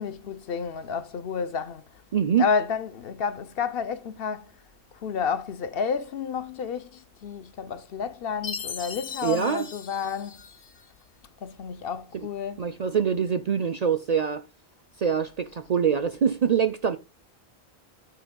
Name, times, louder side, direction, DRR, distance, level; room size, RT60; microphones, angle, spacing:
voice 1, 0.0-1.8 2.4-4.5 5.0-10.4 11.4-12.6, left 6 dB, 65° left, 0.8 m, -30 dB
voice 2, 2.1-2.5 9.2-9.7 12.1-12.3 12.6-14.4 15.0-17.0, right 7 dB, 50° right, 0.5 m, -24 dB
Chime, 8.4-10.9, left 6 dB, 80° left, 1.4 m, -38 dB
12.0 x 8.9 x 2.2 m
omnidirectional pair, 1.1 m